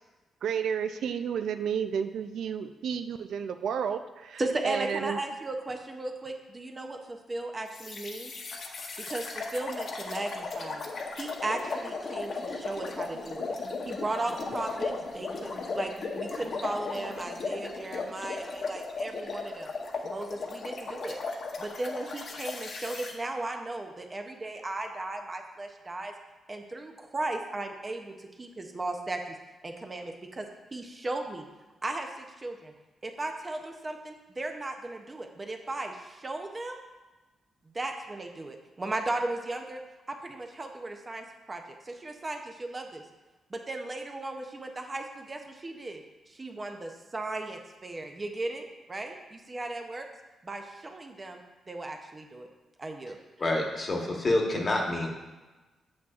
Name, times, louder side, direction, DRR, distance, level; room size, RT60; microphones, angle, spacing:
voice 1, 0.4-5.2, right 7 dB, 75° right, 9 dB, 0.4 m, -31 dB
voice 2, 4.4-8.3 9.1-10.8 11.1-13.5 13.9-19.7 20.0-21.2 21.6-26.1 26.5-29.4 29.6-31.4 31.8-32.7 33.0-36.8 37.7-39.8 40.1-43.0 43.5-50.1 50.4-51.4 51.7-52.5 52.8-53.2, right 2 dB, 20° right, 4 dB, 0.5 m, -36 dB
sound 1, 7.7-23.1, left 4 dB, 50° left, 0.8 m, -36 dB
voice 3, 53.4-55.1, left 2 dB, 30° left, 0 dB, 1.1 m, -27 dB
8.5 x 7.5 x 2.4 m, 1.2 s
wide cardioid pair, 150°, 0 cm